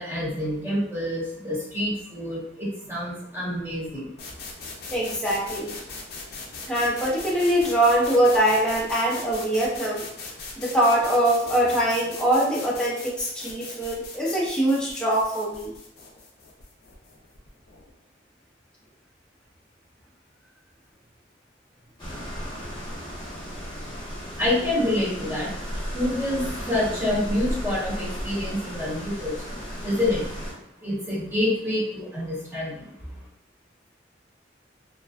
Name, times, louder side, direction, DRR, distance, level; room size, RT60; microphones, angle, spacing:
voice 1, 0.0-4.1 24.4-25.5 25.9-29.6 29.8-30.2 30.8-33.1, left 1 dB, 15° right, -8 dB, 1.0 m, -27 dB
sound 1, 4.2-17.9, left 3 dB, 60° left, 0.5 m, -40 dB
voice 2, 4.9-5.7 6.7-10.0 10.6-15.7, right 1 dB, 5° left, -6 dB, 0.5 m, -23 dB
sound 2, 22.0-30.5, equal, 25° left, 0.9 m, -34 dB
2.4 x 2.2 x 2.3 m, 0.76 s
head